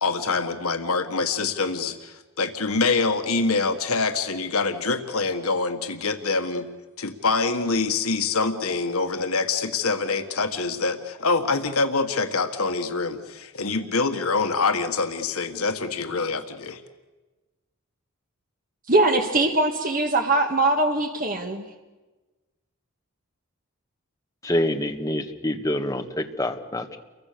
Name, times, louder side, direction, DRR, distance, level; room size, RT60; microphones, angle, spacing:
voice 1, 0.0-6.7 7.0-16.8, left 4 dB, 80° left, 7 dB, 1.7 m, -25 dB
voice 2, 18.9-21.7, right 2 dB, 40° right, 4 dB, 1.8 m, -21 dB
voice 3, 24.4-27.0, left 1 dB, 15° left, 4 dB, 1.7 m, -26 dB
29.5 x 23.5 x 6.9 m, 1.2 s
head